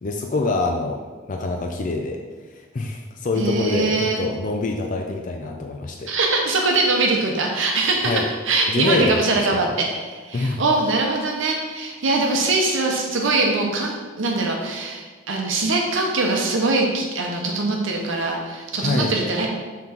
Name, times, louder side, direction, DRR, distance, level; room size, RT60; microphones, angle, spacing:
voice 1, 0.0-1.0 1.3-2.2 2.7-6.1 8.0-8.2 8.7-9.2 10.3-10.6 18.8-19.1, left 2 dB, 40° left, 2 dB, 0.4 m, -25 dB
voice 2, 3.3-4.2 6.1-19.5, right 3 dB, 65° right, 0 dB, 0.8 m, -22 dB
5.8 x 3.8 x 4.3 m, 1.4 s
head